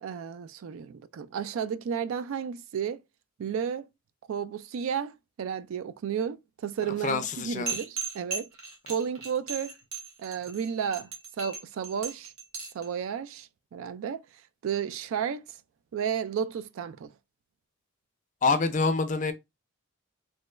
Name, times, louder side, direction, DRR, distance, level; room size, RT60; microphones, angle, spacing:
voice 1, 0.0-3.0 3.4-3.9 4.3-8.5 8.9-9.7 10.2-11.1 11.4-12.3 12.7-14.2 14.6-15.5 15.9-17.1, right 7 dB, 70° right, 0.3 m, -32 dB
voice 2, 7.0-7.7 18.4-19.3, left 4 dB, 35° left, 0.4 m, -26 dB
sound 1, 7.7-12.8, right 5 dB, 90° right, 1.2 m, -36 dB
3.1 x 3.1 x 2.2 m
head